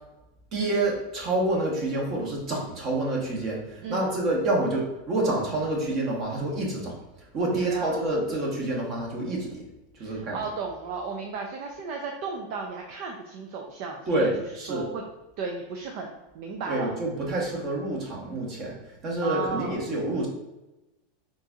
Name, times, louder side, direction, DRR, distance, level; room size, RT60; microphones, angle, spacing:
voice 1, 0.5-6.9 7.3-9.6 10.0-10.4 14.1-14.9 16.7-20.3, right 2 dB, 40° right, -2 dB, 1.1 m, -28 dB
voice 2, 3.8-4.2 7.5-8.0 10.0-14.3 14.7-15.0 15.4-16.9 19.2-19.7, right 4 dB, 60° right, 2 dB, 0.4 m, -34 dB
3.8 x 2.4 x 2.7 m, 1.0 s
hypercardioid pair, 120°, 0 cm